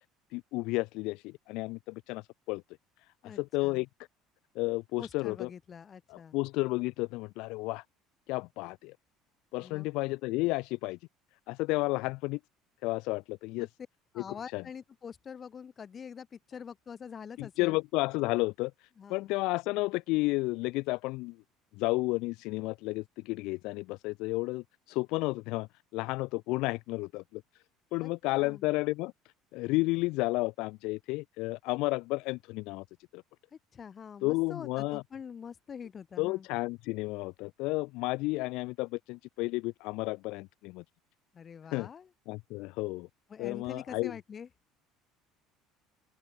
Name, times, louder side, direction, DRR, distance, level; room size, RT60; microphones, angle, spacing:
voice 1, 0.3-2.6 3.2-3.9 4.5-5.5 6.1-7.8 8.3-9.0 9.5-11.0 11.5-12.4 12.8-13.7 14.2-14.6 17.4-18.7 19.1-21.4 21.8-27.4 27.9-29.1 29.5-32.8 33.1-33.2 34.2-35.0 36.2-40.8 41.7-41.9 42.3-43.1 43.4-44.1, left 23 dB, 70° left, 2.5 m, -32 dB
voice 2, 3.2-3.8 5.0-6.4 9.6-9.9 13.6-13.7 14.2-17.8 19.0-19.3 28.0-28.6 33.5-36.5 41.3-42.1 43.3-44.5, left 7 dB, 25° left, 7.2 m, -45 dB
open air
cardioid pair, 145°, 0 cm